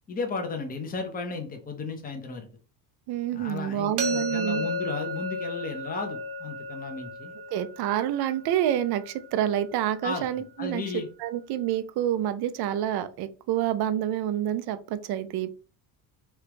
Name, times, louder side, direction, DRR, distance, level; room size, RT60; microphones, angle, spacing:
voice 1, 0.1-2.5 3.3-7.3 10.0-10.3 10.6-11.1, left 4 dB, 20° left, 4 dB, 0.7 m, -34 dB
voice 2, 3.1-4.7 7.5-15.5, right 11 dB, 55° right, 11 dB, 0.5 m, -28 dB
sound 1, 4.0-9.8, left 1 dB, 80° right, 0.9 m, -34 dB
3.2 x 2.4 x 3.0 m, 0.37 s
supercardioid pair, 105°, 46 cm